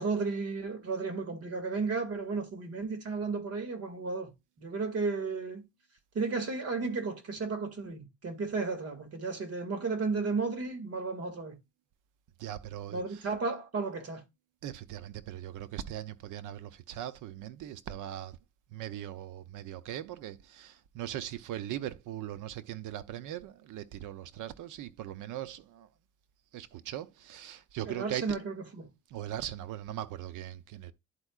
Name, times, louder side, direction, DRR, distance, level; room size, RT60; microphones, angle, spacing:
voice 1, 0.0-4.3 4.6-5.7 6.1-11.6 12.9-14.2 27.8-28.9, right 4 dB, 55° right, 2.2 m, -33 dB
voice 2, 12.4-13.0 14.6-18.4 18.7-25.9 26.5-28.2 29.1-30.9, right 12 dB, 85° right, 0.7 m, -40 dB
11.0 x 4.5 x 2.4 m
cardioid pair, 90°, 30 cm